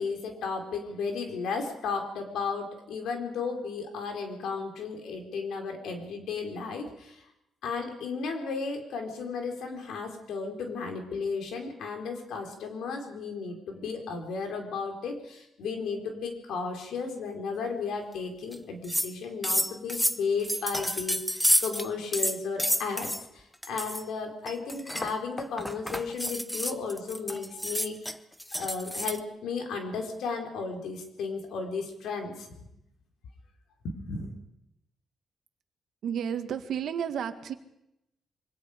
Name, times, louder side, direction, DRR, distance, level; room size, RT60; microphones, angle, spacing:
voice 1, 0.0-7.2 7.6-28.1 28.6-32.5 33.8-34.3, left 4 dB, 85° left, 3 dB, 4.4 m, -34 dB
sound 1, 18.5-18.6 18.8-19.1 19.4-21.9 22.1-23.2 23.6-24.0 24.5-29.2, equal, 5° left, 0.9 m, -29 dB
voice 2, 36.0-37.5, right 8 dB, 70° right, 8 dB, 1.9 m, -32 dB
26.0 x 24.0 x 5.2 m, 0.83 s
cardioid pair, 125°, 0 cm